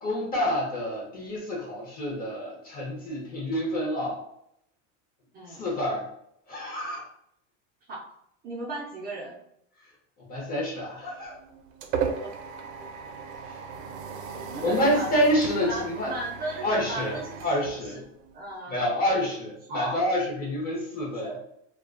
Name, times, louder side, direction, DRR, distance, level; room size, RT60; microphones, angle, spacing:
voice 1, 0.0-4.2 5.5-6.1 6.5-7.0 10.3-11.3 13.5-13.6 14.6-16.1 16.6-17.2 17.4-18.0 18.7-21.3, equal, 25° left, -3 dB, 0.7 m, -28 dB
voice 2, 8.4-9.4 12.2-12.3 12.8-12.9 14.4-15.4 15.6-17.4 17.8-18.0 18.3-18.8 19.7-20.0 21.2-21.4, right 2 dB, 25° right, -6 dB, 0.4 m, -36 dB
sound 1, 11.1-18.5, right 6 dB, 80° right, 0.5 m, -36 dB
2.3 x 2.2 x 2.4 m, 0.74 s
supercardioid pair, 140°, 38 cm